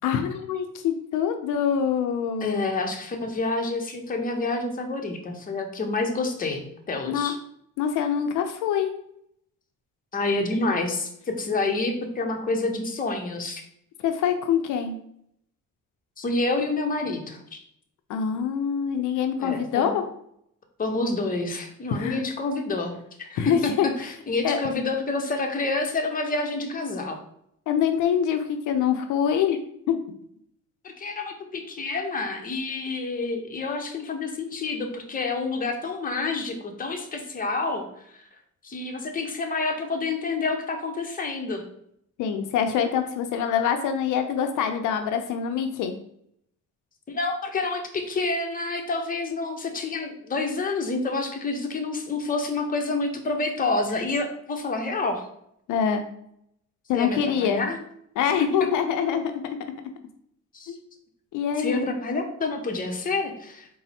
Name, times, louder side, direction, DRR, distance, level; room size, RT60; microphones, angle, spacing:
voice 1, 0.0-2.6 7.1-7.3 7.8-8.9 14.0-15.0 18.1-20.0 21.9-22.3 23.4-23.9 24.4-24.6 27.7-29.6 29.9-30.0 42.2-46.0 55.7-56.0 56.9-57.6 58.2-59.4 60.7-60.8 61.3-61.9, left 8 dB, 80° left, 6 dB, 0.5 m, -25 dB
voice 2, 2.4-7.4 10.1-13.6 16.2-17.6 19.4-20.0 20.8-27.2 30.8-37.8 38.1-38.2 38.6-41.6 47.1-55.3 56.9-57.8 58.4-58.5 60.5-60.7 61.6-63.7, left 3 dB, 30° left, 3 dB, 0.7 m, -28 dB
4.1 x 2.0 x 4.1 m, 0.71 s
cardioid pair, 90°, 30 cm